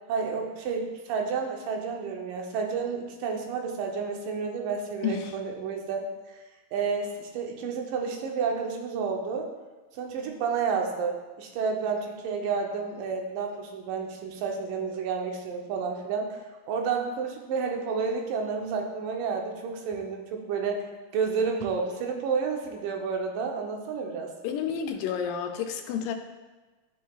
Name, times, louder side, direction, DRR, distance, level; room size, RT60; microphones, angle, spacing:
voice 1, 0.1-6.4 6.7-9.5 9.9-16.4 16.7-20.9 21.1-24.3, right 5 dB, 80° right, 2 dB, 2.5 m, -30 dB
voice 2, 5.0-5.3 24.4-26.1, left 7 dB, 85° left, 5 dB, 2.2 m, -30 dB
11.5 x 5.6 x 2.3 m, 1.2 s
omnidirectional pair, 3.8 m